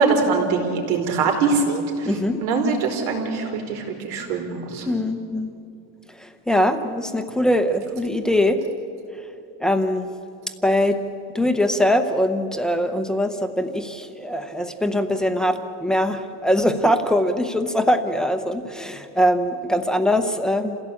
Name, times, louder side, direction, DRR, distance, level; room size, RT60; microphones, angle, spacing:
voice 1, 0.0-2.1 2.4-4.9, right 4 dB, 85° right, 2 dB, 4.6 m, -22 dB
voice 2, 2.0-2.4 4.9-5.5 6.2-8.6 9.2-9.3 9.6-10.1 10.6-11.0 11.3-20.8, left 1 dB, ahead, 7 dB, 0.7 m, -22 dB
28.0 x 16.5 x 8.5 m, 2.8 s
cardioid pair, 180°, 42 cm